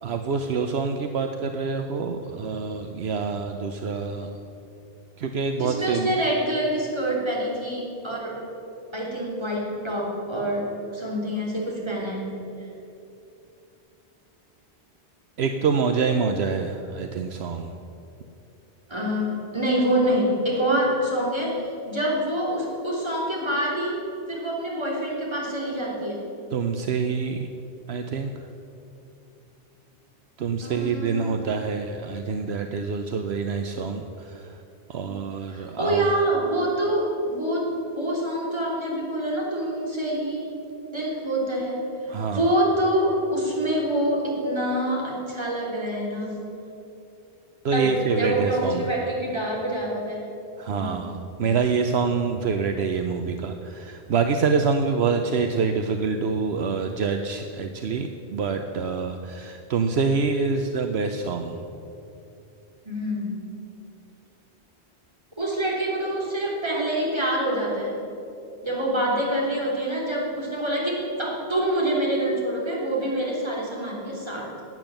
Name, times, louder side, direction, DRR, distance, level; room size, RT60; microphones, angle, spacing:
voice 1, 0.0-4.4 5.2-6.1 15.4-17.7 26.5-27.5 27.9-28.3 30.4-34.6 34.9-36.2 42.1-42.5 47.6-48.9 50.6-61.6, right 5 dB, 70° right, 6 dB, 1.0 m, -26 dB
voice 2, 5.6-8.4 8.9-12.3 18.9-21.5 21.9-24.0 24.3-26.2 30.6-31.3 34.9-35.1 35.5-40.6 40.9-41.8 42.3-46.4 47.7-50.2 50.7-51.0 51.4-51.6 62.8-63.4 65.4-68.0 68.6-74.5, right 1 dB, 25° right, -4 dB, 3.3 m, -26 dB
12.0 x 8.9 x 9.0 m, 2.8 s
omnidirectional pair, 1.1 m